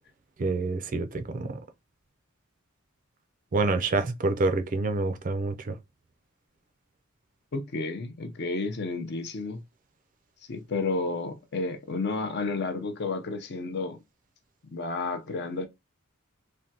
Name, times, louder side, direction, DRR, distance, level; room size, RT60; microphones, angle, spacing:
voice 1, 0.4-1.6 3.5-5.7, right 3 dB, 40° right, 0.4 m, -27 dB
voice 2, 7.5-9.6 10.5-14.0 14.7-15.7, left 3 dB, 50° left, 0.6 m, -31 dB
3.4 x 2.2 x 2.7 m
head